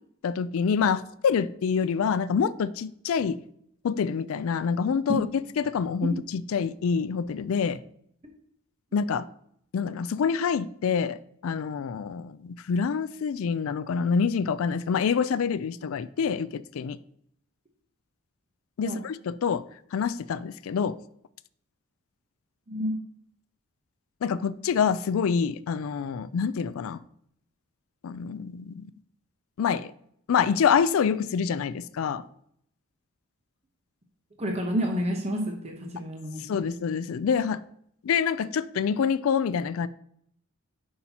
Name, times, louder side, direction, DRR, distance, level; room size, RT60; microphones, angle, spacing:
voice 1, 0.2-3.4 3.8-7.8 8.9-9.3 9.7-11.2 11.4-17.0 18.8-19.6 19.9-21.0 24.2-27.0 28.0-28.9 29.6-29.9 30.3-32.2 36.4-37.6 38.0-39.9, left 6 dB, 70° left, 0.3 m, -26 dB
voice 2, 34.4-36.7, equal, 30° right, 0.8 m, -30 dB
8.5 x 5.6 x 2.8 m
head